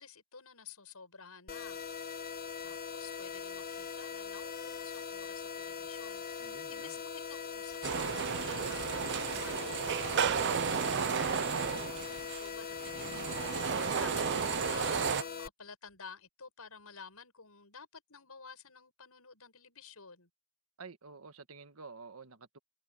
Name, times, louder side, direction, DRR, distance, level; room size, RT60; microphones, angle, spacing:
voice 1, 0.0-1.8 2.6-11.6 12.3-20.3, left 5 dB, 90° left, 7.3 m, -52 dB
sound 1, 1.5-15.5, left 6 dB, 45° left, 1.4 m, -41 dB
voice 2, 6.4-7.0 20.8-22.6, right 4 dB, 75° right, 1.6 m, -51 dB
sound 2, 7.8-15.2, right 7 dB, 55° right, 0.6 m, -33 dB
head